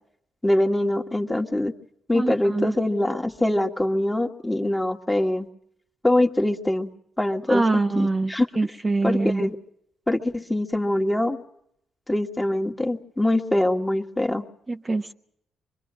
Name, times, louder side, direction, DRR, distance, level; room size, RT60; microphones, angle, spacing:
voice 1, 0.4-1.7 2.1-5.5 6.0-6.9 7.2-8.5 9.0-9.5 10.1-11.4 12.1-14.4, left 1 dB, 10° left, 3 dB, 1.7 m, -23 dB
voice 2, 2.1-2.7 7.5-9.5 14.7-15.1, right 3 dB, 30° right, 4 dB, 0.9 m, -24 dB
24.5 x 21.5 x 6.3 m, 0.76 s
supercardioid pair, 65°, 0 cm